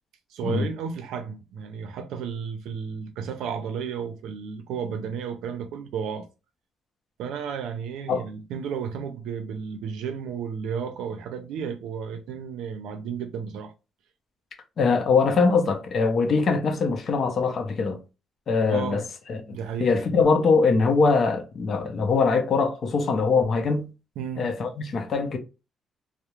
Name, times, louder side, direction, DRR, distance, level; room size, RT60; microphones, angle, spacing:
voice 1, 0.3-6.3 7.2-13.7 18.7-19.0 19.5-19.9 24.2-24.5, right 7 dB, 90° right, 0.4 m, -33 dB
voice 2, 14.8-18.0 18.5-19.0 19.3-23.9 24.4-25.4, left 4 dB, 55° left, 0.5 m, -22 dB
2.3 x 2.0 x 2.9 m
cardioid pair, 90°, 0 cm